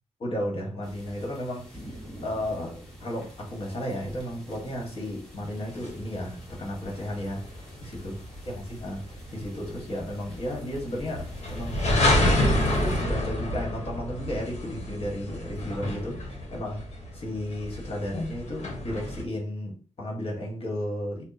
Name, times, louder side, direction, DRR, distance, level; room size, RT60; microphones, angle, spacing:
voice 1, 0.2-1.9 2.2-8.2 8.4-12.4 12.7-21.2, left 1 dB, 55° left, 1.4 m, -34 dB
sound 1, 0.8-13.0, equal, 5° left, 1.3 m, -47 dB
sound 2, 5.8-19.2, left 1 dB, 80° left, 1.0 m, -29 dB
3.5 x 2.1 x 4.1 m
wide cardioid pair, 105°, 11 cm